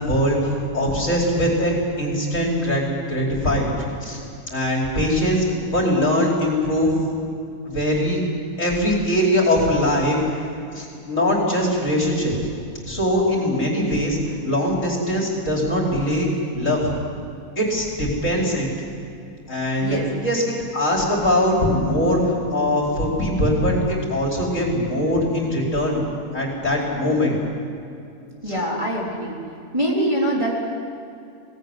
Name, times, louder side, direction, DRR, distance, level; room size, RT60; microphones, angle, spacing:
voice 1, 0.0-3.7 4.0-4.2 4.5-7.0 7.6-8.2 8.6-10.2 10.7-12.3 12.8-16.3 16.5-16.9 17.6-18.7 19.5-26.0 26.3-27.3 28.5-28.6, equal, 50° left, -2 dB, 5.0 m, -21 dB
voice 2, 28.4-29.4 29.7-30.6, equal, 20° right, -4 dB, 3.8 m, -23 dB
23.0 x 18.0 x 9.9 m, 2.5 s
omnidirectional pair, 1.7 m